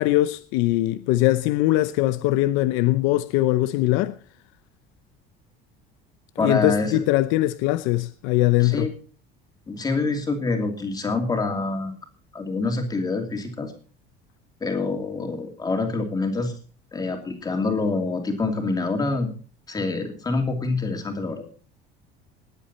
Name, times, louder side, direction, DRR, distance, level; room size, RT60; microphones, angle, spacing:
voice 1, 0.0-4.1 6.4-8.9, left 16 dB, 80° left, 0.7 m, -21 dB
voice 2, 6.4-6.9 8.6-8.9 9.7-11.9 12.3-13.7 14.6-16.5 16.9-19.3 19.7-21.4, left 3 dB, 20° left, 2.8 m, -26 dB
19.5 x 8.3 x 4.2 m
cardioid pair, 145°, 20 cm